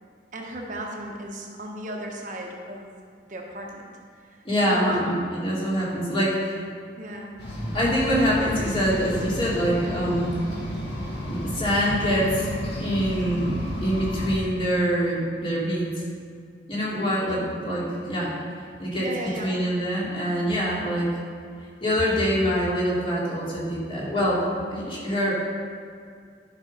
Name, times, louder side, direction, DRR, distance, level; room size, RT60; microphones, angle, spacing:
voice 1, 0.3-2.9 3.3-4.4 4.7-5.0 7.0-7.4 17.2-17.5 19.0-19.6, right 1 dB, 45° right, 0 dB, 1.1 m, -36 dB
voice 2, 4.4-6.7 7.7-10.3 11.2-12.5 12.8-15.9 16.7-18.4 18.8-19.1 19.4-21.1 21.8-25.3, equal, 30° left, -7 dB, 2.6 m, -25 dB
sound 1, 7.4-14.4, equal, 65° left, 2.0 m, -32 dB
11.0 x 5.4 x 5.4 m, 2.2 s
head